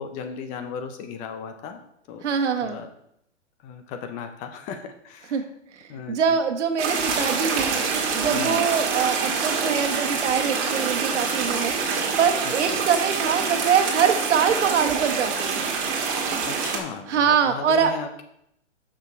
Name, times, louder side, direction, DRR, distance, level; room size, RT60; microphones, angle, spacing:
voice 1, 0.0-1.8 2.1-2.2 2.6-2.9 3.6-5.4 5.9-6.2 8.3-8.6 12.7-12.8 16.4-18.1, left 6 dB, 20° left, 7 dB, 0.5 m, -35 dB
voice 2, 2.2-2.8 5.3-5.4 6.1-7.7 8.1-11.7 12.2-15.7 17.1-18.0, right 7 dB, 70° right, 7 dB, 1.4 m, -23 dB
sound 1, 6.8-16.8, right 5 dB, 35° right, 1.8 m, -26 dB
8.0 x 6.1 x 4.6 m, 0.74 s
hypercardioid pair, 135°, 36 cm